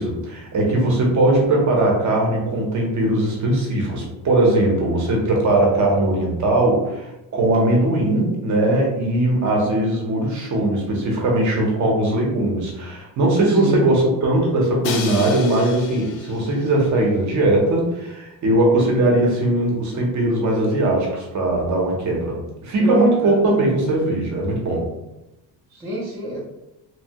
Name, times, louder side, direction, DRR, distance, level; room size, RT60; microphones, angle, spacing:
voice 1, 0.0-24.9, right 1 dB, 40° right, -1 dB, 0.7 m, -20 dB
voice 2, 13.5-13.8 22.8-23.3 25.7-26.4, right 1 dB, 5° right, -6 dB, 0.4 m, -26 dB
Crash cymbal, 14.8-16.8, left 5 dB, 90° left, 0.6 m, -32 dB
2.9 x 2.1 x 2.8 m, 0.96 s
cardioid pair, 160°, 44 cm